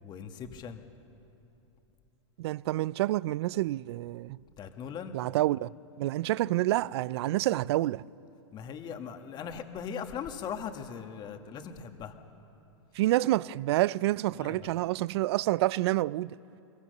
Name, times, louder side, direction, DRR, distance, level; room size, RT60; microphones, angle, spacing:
voice 1, 0.0-0.8 4.6-5.2 8.5-12.1 14.3-14.7, left 7 dB, 30° left, 1.6 m, -39 dB
voice 2, 2.4-4.4 5.1-5.7 6.0-8.0 13.0-16.3, right 16 dB, 60° right, 0.4 m, -28 dB
22.5 x 22.5 x 6.7 m
hypercardioid pair, 130°, 15 cm